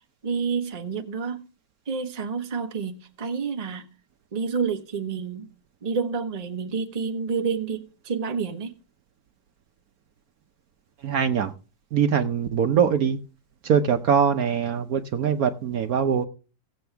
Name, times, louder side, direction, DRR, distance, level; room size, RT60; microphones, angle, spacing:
voice 1, 0.2-1.4 1.9-3.8 4.3-5.5 5.8-8.7, right 5 dB, 25° right, 1.0 m, -29 dB
voice 2, 11.0-11.5 11.9-13.2 13.6-16.3, right 7 dB, 65° right, 1.1 m, -22 dB
17.0 x 7.8 x 3.4 m
omnidirectional pair, 1.9 m